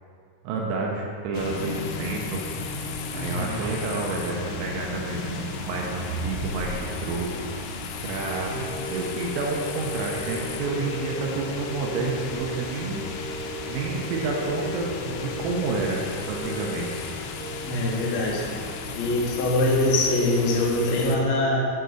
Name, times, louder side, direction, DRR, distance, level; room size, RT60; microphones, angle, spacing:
voice 1, 0.4-2.4 3.1-7.3 8.0-13.0 13.7-16.9, right 3 dB, 85° right, -1 dB, 3.3 m, -30 dB
sound 1, 1.3-21.2, left 4 dB, 90° left, 3.4 m, -35 dB
voice 2, 3.1-3.7 8.5-8.6 17.6-18.6 18.9-21.7, left 1 dB, 75° left, -3 dB, 2.2 m, -24 dB
sound 2, 5.0-7.0, right 1 dB, 50° left, 1.4 m, -35 dB
sound 3, 8.3-17.4, left 1 dB, 60° right, 1.5 m, -36 dB
9.1 x 3.9 x 6.4 m, 2.4 s
omnidirectional pair, 5.8 m